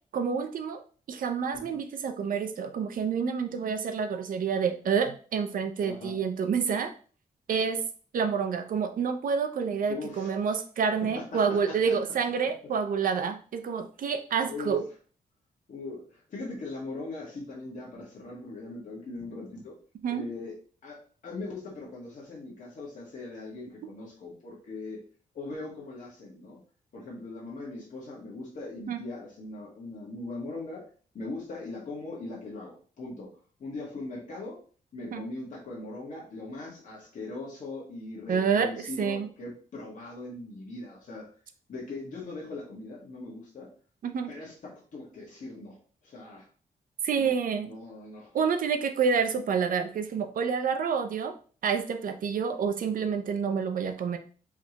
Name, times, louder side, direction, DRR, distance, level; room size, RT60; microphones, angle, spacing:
voice 1, 0.1-0.8 1.1-6.9 7.5-7.8 8.1-14.9 20.0-20.3 28.9-29.0 35.1-35.2 38.3-39.3 44.0-44.3 47.0-47.7 48.3-51.3 51.6-54.2, right 6 dB, 65° right, 7 dB, 0.6 m, -28 dB
voice 2, 5.8-6.1 9.9-10.3 11.0-11.9 14.4-14.8 15.7-19.7 20.1-20.5 20.8-21.0 21.2-25.0 25.3-26.6 26.9-30.8 31.1-33.3 33.6-34.6 34.9-41.3 41.7-43.7 44.3-45.8 46.0-46.5 47.2-47.3 47.6-48.3, left 2 dB, 55° left, -4 dB, 1.6 m, -40 dB
4.8 x 3.4 x 2.9 m, 0.41 s
wide cardioid pair, 150°, 16 cm